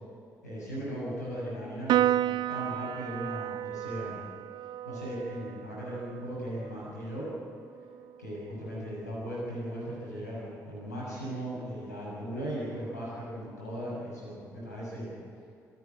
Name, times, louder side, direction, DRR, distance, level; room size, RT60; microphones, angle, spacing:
voice 1, 0.4-2.2 2.5-4.2 4.9-7.3 8.2-15.1, equal, 85° left, -6 dB, 7.0 m, -37 dB
Piano, 1.9-8.6, right 12 dB, 60° right, 0.5 m, -33 dB
27.0 x 11.0 x 9.3 m, 2.5 s
figure-of-eight pair, 40°, 9 cm